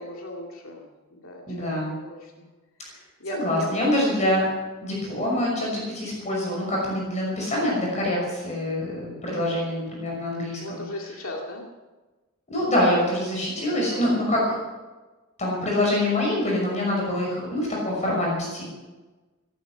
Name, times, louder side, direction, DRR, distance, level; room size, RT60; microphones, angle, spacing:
voice 1, 0.0-1.7 2.1-2.5 3.2-3.7 5.1-5.3 10.6-11.7 12.8-13.0 13.3-14.3 17.2-17.4, left 1 dB, 80° left, 0 dB, 2.2 m, -38 dB
voice 2, 1.5-1.9 2.9-3.0 3.3-4.5 4.8-10.8 12.5-14.6 15.4-18.6, left 1 dB, 35° left, -3 dB, 5.8 m, -25 dB
17.5 x 12.0 x 6.1 m, 1.2 s
head